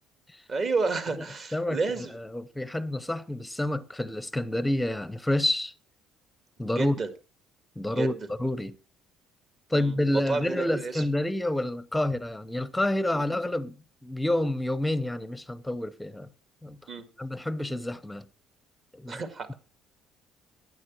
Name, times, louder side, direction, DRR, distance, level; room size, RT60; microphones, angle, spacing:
voice 1, 0.5-2.1 6.6-7.1 7.9-8.1 9.7-11.0 13.1-13.3 16.9-17.1 19.1-19.5, right 4 dB, 40° right, 2.0 m, -31 dB
voice 2, 2.1-5.7 6.6-7.0 7.8-8.7 9.7-16.3 16.6-16.8 17.2-18.3 18.9-19.2, left 1 dB, 5° left, 0.8 m, -28 dB
11.5 x 9.7 x 4.5 m
cardioid pair, 130°, 0 cm